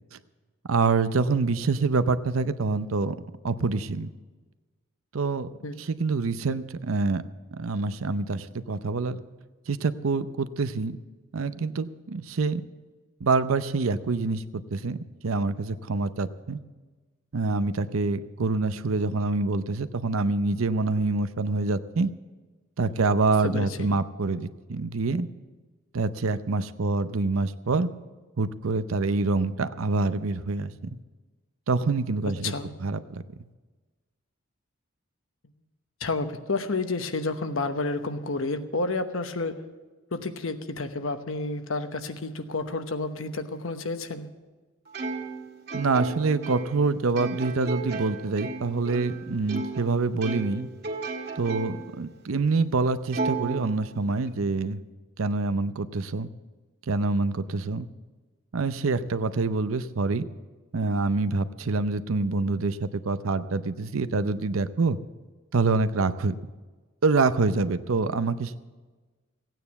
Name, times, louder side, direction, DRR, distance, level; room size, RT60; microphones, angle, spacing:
voice 1, 0.7-3.2 3.4-4.1 5.1-5.5 5.9-7.2 7.5-9.2 9.7-11.0 11.3-12.6 13.2-14.4 14.7-15.0 15.2-16.6 17.3-22.1 22.8-25.3 25.9-27.9 28.4-30.7 31.7-32.5 32.8-33.2 45.7-50.7 51.4-54.8 55.2-56.3 56.9-57.9 58.5-60.3 60.7-65.0 65.5-66.3 67.0-68.6, right 3 dB, 85° right, 13 dB, 0.6 m, -26 dB
voice 2, 23.4-23.9 32.4-32.7 36.0-39.6 40.1-44.3, left 3 dB, 75° left, 8 dB, 1.0 m, -30 dB
Plucked string instrument, 44.9-49.9 50.2-51.9 52.4-52.5 53.1-54.3, right 3 dB, 50° right, 1.7 m, -34 dB
16.0 x 9.2 x 7.0 m, 1.3 s
head